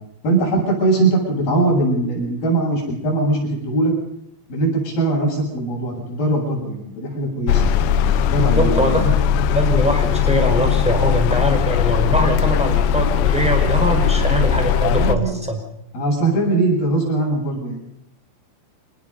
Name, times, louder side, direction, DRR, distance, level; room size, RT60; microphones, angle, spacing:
voice 1, 0.2-3.9 4.5-7.7 8.2-9.0 14.9-15.4 15.9-17.8, right 2 dB, 60° left, -1 dB, 9.5 m, -21 dB
sound 1, 7.5-15.2, left 8 dB, 85° left, 3.2 m, -18 dB
voice 2, 8.4-9.2 9.5-15.6, equal, ahead, 4 dB, 4.4 m, -22 dB
26.0 x 20.0 x 5.5 m, 0.76 s
omnidirectional pair, 5.0 m